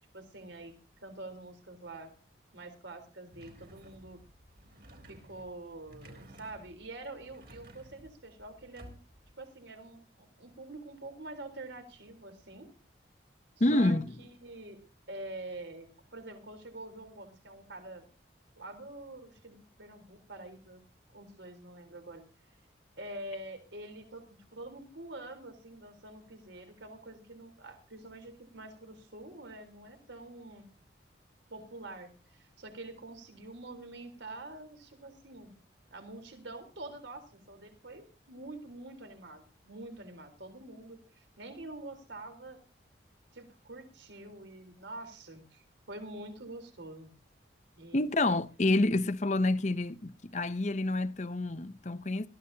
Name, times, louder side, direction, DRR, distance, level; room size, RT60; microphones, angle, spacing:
voice 1, 0.1-0.7 1.0-2.1 2.5-4.2 5.1-8.9 9.4-12.7 13.7-14.8 15.1-18.0 18.6-20.8 21.1-22.2 23.0-30.7 31.5-35.5 35.9-42.6 43.3-47.1 47.8-48.1, right 2 dB, 75° right, 3.9 m, -46 dB
sound 1, 3.3-9.3, equal, 55° right, 3.8 m, -55 dB
voice 2, 13.6-14.1 47.9-52.3, left 2 dB, 40° left, 0.7 m, -28 dB
21.5 x 14.5 x 2.8 m
head